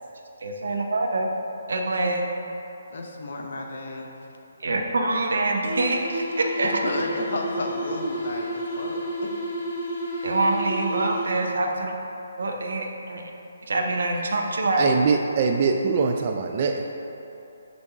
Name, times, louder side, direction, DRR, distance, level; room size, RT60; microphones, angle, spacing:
voice 1, 0.4-1.3 1.7-2.2 4.6-6.7 10.2-11.9 12.4-13.2 13.7-14.9, right 2 dB, 55° right, 1 dB, 0.7 m, -25 dB
voice 2, 2.9-4.1 6.6-9.3, left 2 dB, 50° left, 1 dB, 0.7 m, -32 dB
sound 1, 5.6-11.6, equal, 20° left, 1.3 m, -31 dB
voice 3, 14.8-16.9, right 5 dB, 35° right, 3 dB, 0.3 m, -23 dB
6.9 x 2.7 x 5.5 m, 2.9 s
figure-of-eight pair, 140°, 0 cm